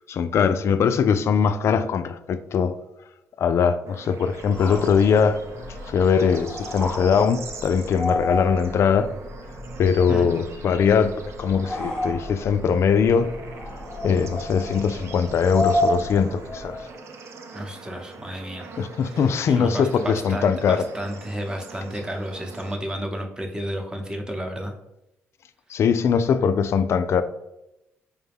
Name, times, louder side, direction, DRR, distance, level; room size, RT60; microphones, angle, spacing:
voice 1, 0.1-2.8 3.4-5.4 5.9-9.1 9.8-13.3 14.0-16.8 18.8-20.8 25.7-27.2, left 6 dB, 60° left, 0.3 m, -21 dB
Bird / Insect / Frog, 3.9-22.8, right 4 dB, 60° right, 0.5 m, -42 dB
sound 1, 4.4-16.9, left 1 dB, 20° left, 0.8 m, -31 dB
voice 2, 17.5-18.7 19.1-24.7, equal, 15° right, 0.8 m, -32 dB
4.8 x 2.1 x 3.4 m
cardioid pair, 75°, 5 cm